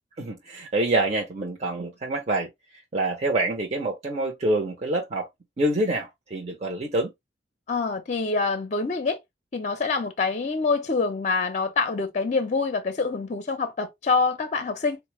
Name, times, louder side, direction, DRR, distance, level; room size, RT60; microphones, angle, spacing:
voice 1, 0.2-2.5 2.9-5.3 5.6-7.1, right 2 dB, 35° right, 0.6 m, -26 dB
voice 2, 7.7-9.2 9.5-15.0, left 4 dB, 40° left, 0.5 m, -26 dB
4.0 x 2.1 x 3.0 m
head